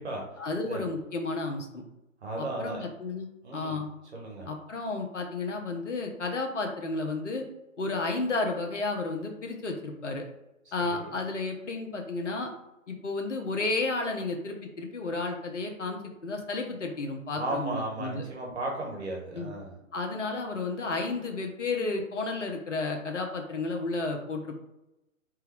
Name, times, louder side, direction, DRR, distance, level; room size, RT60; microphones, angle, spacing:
voice 1, 0.4-1.8 2.4-3.9 4.5-7.5 7.8-10.3 10.7-12.5 12.9-18.2 19.3-19.5 19.9-24.6, left 3 dB, 60° left, 3 dB, 1.0 m, -32 dB
voice 2, 2.2-2.9 3.4-3.8 4.1-4.5 10.9-11.1 17.4-19.7, right 1 dB, 50° right, -1 dB, 1.6 m, -35 dB
4.0 x 3.5 x 3.4 m, 0.91 s
figure-of-eight pair, 130°, 41 cm